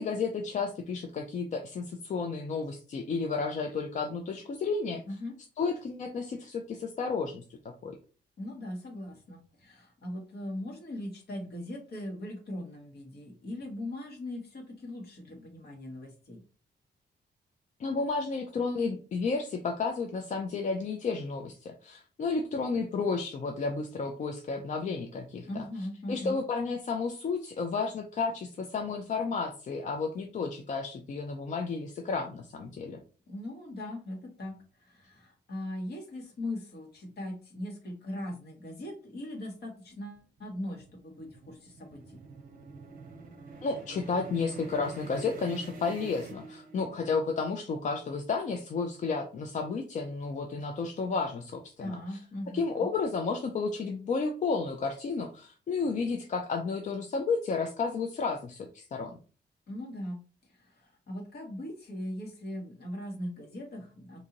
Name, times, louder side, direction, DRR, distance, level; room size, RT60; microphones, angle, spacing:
voice 1, 0.0-5.0 5.6-7.4 7.8-8.0 17.8-25.6 26.1-33.0 43.6-52.2 52.5-59.1, left 4 dB, 45° left, 4 dB, 0.4 m, -32 dB
voice 2, 8.4-16.4 25.5-26.4 33.3-42.2 51.8-52.9 59.7-60.2 60.5-64.3, left 1 dB, 60° left, 1 dB, 1.3 m, -40 dB
sound 1, 39.9-47.1, right 4 dB, 50° right, 0.7 m, -47 dB
2.9 x 2.6 x 3.8 m, 0.38 s
wide cardioid pair, 175°, 18 cm